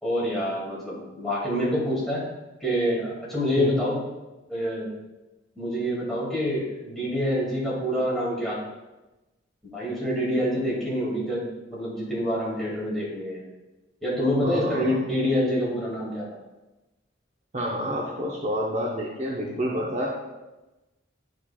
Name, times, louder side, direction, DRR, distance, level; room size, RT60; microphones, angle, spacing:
voice 1, 0.0-2.2 2.6-4.0 4.5-4.9 5.6-8.6 9.6-13.4 14.0-16.3, equal, ahead, -7 dB, 2.1 m, -26 dB
voice 2, 14.3-15.0 17.5-20.2, equal, 35° right, -3 dB, 0.7 m, -29 dB
10.0 x 4.7 x 2.3 m, 1.1 s
head